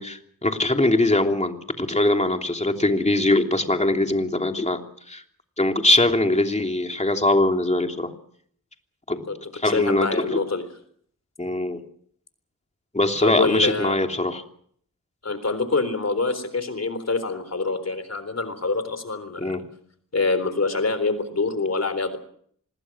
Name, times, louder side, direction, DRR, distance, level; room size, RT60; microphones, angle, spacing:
voice 1, 0.0-4.8 5.1-5.2 5.6-8.1 9.1-9.2 9.5-10.4 11.4-11.8 12.9-14.4 19.4-19.6, left 2 dB, 20° left, 4 dB, 3.1 m, -22 dB
voice 2, 9.6-10.6 13.2-14.0 15.2-19.6 20.1-22.2, left 3 dB, 50° left, 11 dB, 3.8 m, -25 dB
26.0 x 21.0 x 6.2 m, 0.62 s
wide cardioid pair, 75°, 33 cm